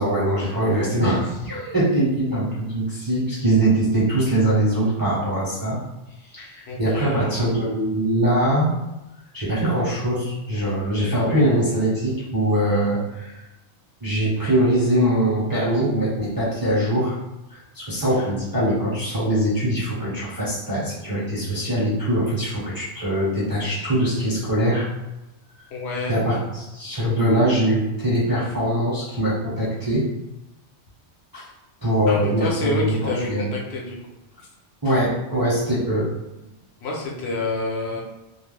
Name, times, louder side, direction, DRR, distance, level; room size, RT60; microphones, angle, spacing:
voice 1, 0.0-5.8 6.3-8.7 9.3-13.4 14.0-17.2 17.5-24.9 26.1-30.1 31.3-31.5 31.8-33.5 34.8-36.1, right 1 dB, 25° right, -8 dB, 0.5 m, -22 dB
voice 2, 6.7-7.6 25.7-26.2 32.1-34.0 36.8-38.0, left 2 dB, 70° left, -1 dB, 0.8 m, -28 dB
2.3 x 2.0 x 3.1 m, 0.96 s
omnidirectional pair, 1.2 m